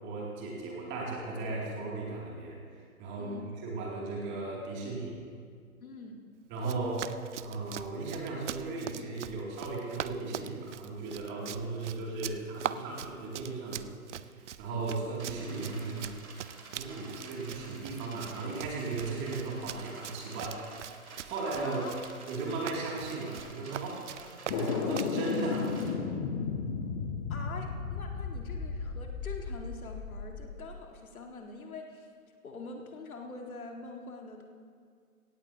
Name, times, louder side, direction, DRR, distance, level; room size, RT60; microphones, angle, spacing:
voice 1, 0.0-5.2 6.5-7.1 7.4-13.9 14.2-16.1 16.7-20.7 21.2-21.8 22.3-24.1 24.5-25.7 27.4-27.5, right 3 dB, 25° right, -2 dB, 2.5 m, -36 dB
voice 2, 3.2-3.6 5.8-6.3 21.6-22.0 27.3-32.1 32.4-34.4, left 3 dB, 70° left, 2 dB, 1.9 m, -44 dB
Run, 6.6-25.2, right 10 dB, 55° right, 0.5 m, -42 dB
sound 1, 15.2-25.9, right 3 dB, 75° right, 2.3 m, -50 dB
sound 2, 24.5-30.6, left 5 dB, 20° left, 0.6 m, -34 dB
17.0 x 16.0 x 2.8 m, 2.1 s
figure-of-eight pair, 130°, 44 cm